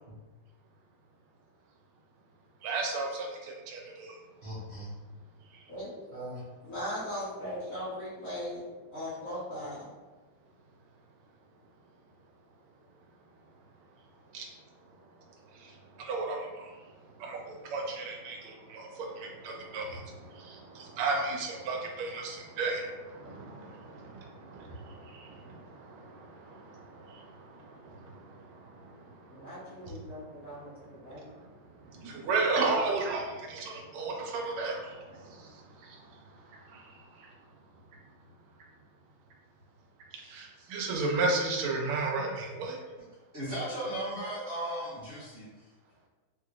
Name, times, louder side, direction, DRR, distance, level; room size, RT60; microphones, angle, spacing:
voice 1, 2.6-4.1 14.3-14.5 16.0-16.5 17.2-17.4 17.7-20.0 20.4-24.1 24.4-25.6 25.9-26.0 26.5-26.6 32.0-34.8 40.3-42.8, right 3 dB, 85° right, 0 dB, 1.5 m, -33 dB
voice 2, 4.4-4.9 6.1-6.4 43.3-45.5, right 1 dB, 50° right, -10 dB, 0.8 m, -36 dB
voice 3, 6.7-8.6 8.9-9.9 29.3-31.3, equal, 50° left, -13 dB, 1.3 m, -38 dB
3.7 x 2.8 x 2.4 m, 1.3 s
omnidirectional pair, 2.3 m